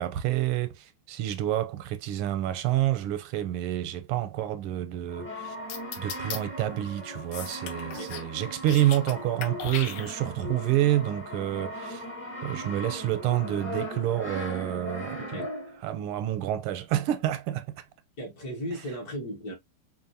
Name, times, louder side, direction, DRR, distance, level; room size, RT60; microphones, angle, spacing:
voice 1, 0.0-5.6 6.0-12.1 12.4-15.5 15.8-17.8, right 13 dB, 90° right, 1.5 m, -28 dB
Brass instrument, 5.1-15.9, equal, 10° left, 0.5 m, -38 dB
sound 1, 5.7-6.4 7.3-8.3 8.6-9.1 9.4-10.4, left 8 dB, 80° left, 1.7 m, -37 dB
voice 2, 7.8-8.2 15.2-15.5 18.2-19.5, equal, 50° left, 1.7 m, -36 dB
5.2 x 2.6 x 2.7 m
omnidirectional pair, 2.4 m